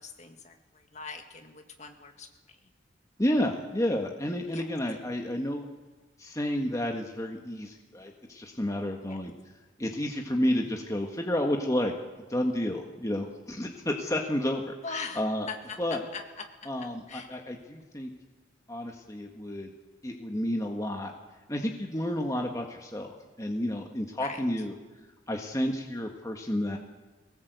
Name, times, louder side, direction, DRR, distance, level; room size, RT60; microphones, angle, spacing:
voice 1, 0.0-2.7 4.5-4.7 9.1-9.2 14.8-17.4 24.2-24.4, left 4 dB, 40° left, 5 dB, 2.1 m, -42 dB
voice 2, 3.2-5.7 6.2-9.3 9.8-11.9 12.3-14.7 15.2-15.5 15.8-16.0 16.7-18.1 18.7-19.7 20.0-21.1 21.5-24.7 25.3-26.8, left 1 dB, 15° left, 2 dB, 1.6 m, -30 dB
22.5 x 19.0 x 8.1 m, 1.2 s
head